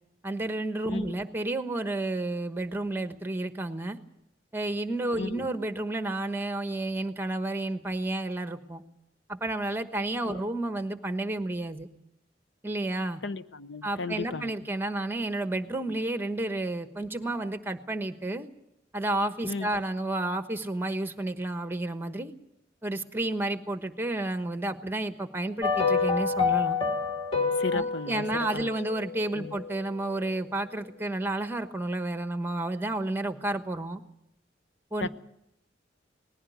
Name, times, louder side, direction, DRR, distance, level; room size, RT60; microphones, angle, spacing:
voice 1, 0.2-4.0 4.5-8.8 9.3-11.9 12.6-13.2 13.8-18.5 18.9-22.3 22.8-26.8 27.7-34.0 34.9-35.1, right 2 dB, 10° right, 9 dB, 1.2 m, -31 dB
voice 2, 13.2-14.6 19.4-19.7 27.6-28.2 28.5-28.7 29.3-29.5 35.0-35.1, left 4 dB, 75° left, 13 dB, 0.8 m, -34 dB
sound 1, 25.6-29.9 30.2-30.3, left 5 dB, 30° left, 2.9 m, -28 dB
19.5 x 16.0 x 9.2 m, 0.83 s
head